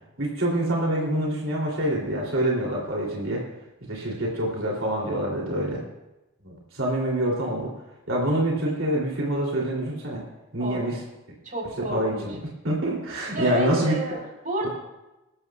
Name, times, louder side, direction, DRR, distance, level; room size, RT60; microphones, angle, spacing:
voice 1, 0.2-3.4 3.8-5.8 6.4-7.7 8.1-10.2 10.5-11.0 11.8-13.9, right 1 dB, 80° right, -3 dB, 3.0 m, -26 dB
voice 2, 11.4-12.3 13.3-14.7, right 1 dB, 40° right, -1 dB, 4.0 m, -30 dB
23.5 x 13.0 x 2.4 m, 1.0 s
head